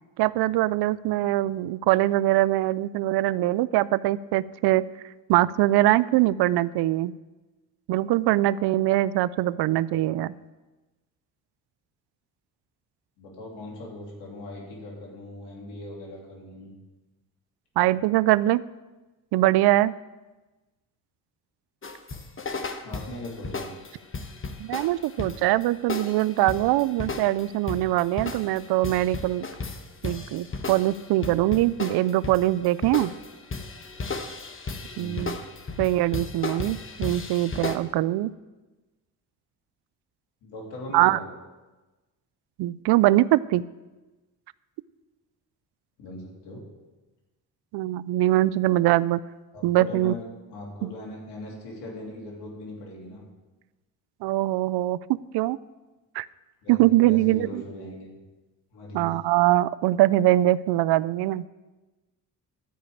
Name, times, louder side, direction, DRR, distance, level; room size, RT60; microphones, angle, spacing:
voice 1, 0.2-4.8 5.3-7.1 7.9-10.3 17.8-18.6 19.3-19.9 24.6-29.5 30.0-33.1 35.0-35.4 35.8-38.3 40.9-41.2 42.6-43.6 47.7-49.2 49.6-50.1 50.8-50.9 54.2-55.0 55.3-55.6 56.1-56.3 56.7-57.6 58.9-61.4, right 16 dB, 75° right, 19 dB, 0.5 m, -22 dB
voice 2, 13.2-16.7 22.8-23.8 34.9-35.3 40.4-41.2 46.0-46.6 49.5-50.2 50.5-53.3 56.6-58.1 58.7-59.2, left 1 dB, 85° left, -2 dB, 2.9 m, -39 dB
sound 1, 21.8-37.8, left 3 dB, 30° left, 1.2 m, -35 dB
12.0 x 5.1 x 8.5 m, 1.2 s
supercardioid pair, 70°, 40 cm